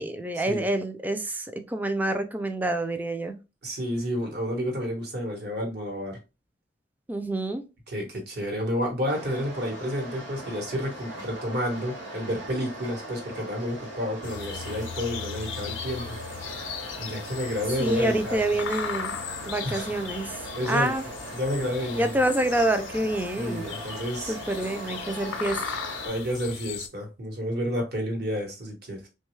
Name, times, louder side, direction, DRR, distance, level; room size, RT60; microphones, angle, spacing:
voice 1, 0.0-3.4 7.1-7.6 17.8-19.1 19.5-20.3 20.7-21.0 22.0-23.7 24.3-25.8, right 1 dB, 10° right, 0.3 m, -27 dB
voice 2, 3.6-6.2 7.9-16.7 17.0-18.5 19.6-20.0 20.5-20.9 21.3-22.2 23.4-24.4 26.0-29.1, equal, 60° right, 1.1 m, -30 dB
sound 1, 9.1-26.1, right 1 dB, 80° right, 1.3 m, -40 dB
sound 2, 14.2-26.9, left 7 dB, 90° left, 0.5 m, -38 dB
3.0 x 2.3 x 3.1 m
head